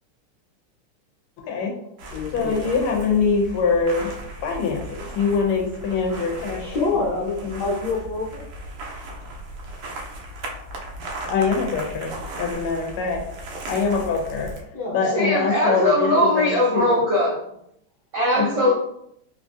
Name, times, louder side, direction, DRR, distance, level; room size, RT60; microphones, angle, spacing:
voice 1, 1.4-1.7 2.3-4.1 4.4-6.8 7.4-7.6 11.3-13.2 13.7-14.5 14.9-17.0 18.4-18.5, left 5 dB, 80° left, 1 dB, 1.6 m, -24 dB
sound 1, 2.0-14.6, right 1 dB, 85° right, 1.6 m, -36 dB
voice 2, 2.1-2.7 6.6-8.4 14.7-15.6 18.4-18.6, left 3 dB, 60° left, -4 dB, 1.4 m, -27 dB
voice 3, 15.0-17.4 18.1-18.7, left 1 dB, 60° right, -8 dB, 0.7 m, -20 dB
4.0 x 2.5 x 2.4 m, 0.75 s
omnidirectional pair, 2.4 m